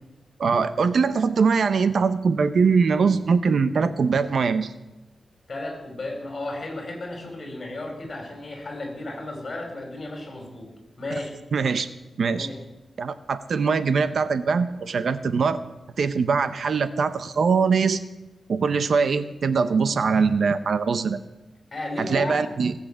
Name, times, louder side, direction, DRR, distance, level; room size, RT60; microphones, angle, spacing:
voice 1, 0.4-4.7 11.5-11.9 12.2-12.5 13.0-15.6 16.0-18.0 18.5-21.2 22.0-22.7, right 5 dB, 60° right, 12 dB, 0.8 m, -22 dB
voice 2, 5.5-10.7 11.0-11.3 12.3-12.6 21.7-22.4, left 2 dB, 35° left, 2 dB, 5.0 m, -34 dB
19.0 x 7.6 x 7.5 m, 0.98 s
wide cardioid pair, 115°, 0 cm